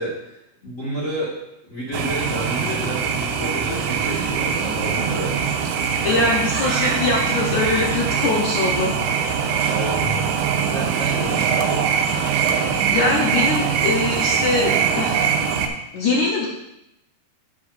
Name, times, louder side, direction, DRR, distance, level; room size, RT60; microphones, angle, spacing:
voice 1, 0.0-1.3 1.6-5.3 6.1-6.3 9.4-10.0 10.4-11.9, right 1 dB, 40° left, -7 dB, 1.1 m, -30 dB
sound 1, 1.9-15.7, right 7 dB, 85° right, 2.7 m, -22 dB
voice 2, 6.0-8.9 12.5-15.3 15.9-16.5, left 2 dB, 80° left, -2 dB, 1.7 m, -22 dB
9.4 x 8.5 x 2.6 m, 0.86 s
omnidirectional pair, 4.6 m